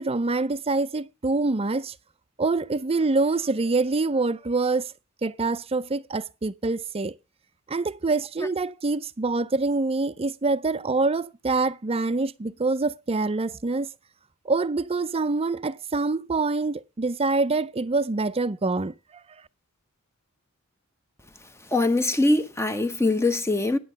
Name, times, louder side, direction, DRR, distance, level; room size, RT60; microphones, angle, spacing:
voice 1, 0.0-2.0 2.4-4.9 5.2-7.1 7.7-13.9 14.4-18.9, right 3 dB, 25° right, 0.5 m, -25 dB
voice 2, 21.7-23.8, left 2 dB, 10° left, 0.8 m, -22 dB
10.0 x 8.1 x 6.4 m
head